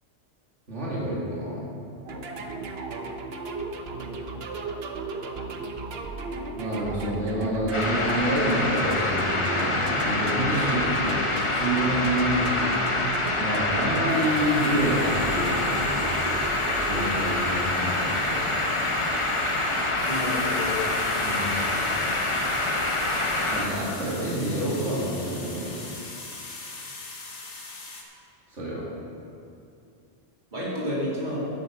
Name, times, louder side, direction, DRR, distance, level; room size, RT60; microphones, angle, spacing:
voice 1, 0.7-1.6 6.5-12.8 13.4-15.8 16.9-18.4 21.2-21.6 23.5-25.9 28.5-28.8, right 1 dB, 85° right, -7 dB, 2.8 m, -28 dB
sound 1, 2.1-18.0, right 3 dB, 60° right, 1.0 m, -35 dB
sound 2, 7.7-23.6, left 2 dB, 30° left, 1.0 m, -26 dB
sound 3, 14.1-28.0, left 3 dB, 85° left, 1.7 m, -42 dB
voice 2, 20.0-21.1 30.5-31.5, left 1 dB, 40° right, -7 dB, 2.9 m, -30 dB
10.5 x 8.3 x 6.6 m, 2.5 s
omnidirectional pair, 1.2 m